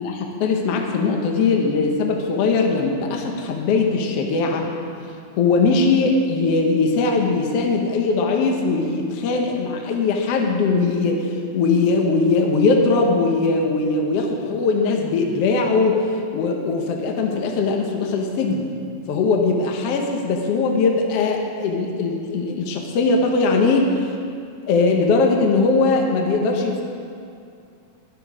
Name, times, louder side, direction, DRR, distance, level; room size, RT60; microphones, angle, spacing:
voice 1, 0.0-4.7 5.4-16.0 16.3-18.7 19.1-24.1 24.7-26.8, left 3 dB, 65° left, 1 dB, 1.5 m, -20 dB
12.5 x 11.5 x 4.9 m, 2.4 s
omnidirectional pair, 4.1 m